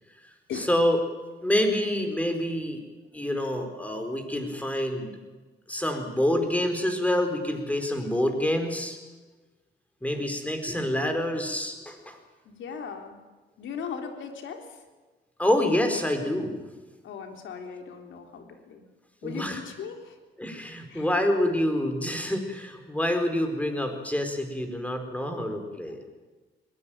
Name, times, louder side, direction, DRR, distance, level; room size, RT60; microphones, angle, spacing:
voice 1, 0.5-1.0 1.4-2.8 3.1-5.2 5.7-9.0 10.0-12.2 15.4-16.6 19.2-19.6 20.4-26.0, left 1 dB, 5° left, 5 dB, 4.5 m, -27 dB
voice 2, 12.5-13.2 13.6-14.8 17.0-18.9 19.2-20.2 20.9-21.1 25.9-26.0, left 6 dB, 75° left, 4 dB, 3.6 m, -38 dB
21.0 x 18.0 x 9.1 m, 1.3 s
cardioid pair, 90°, 20 cm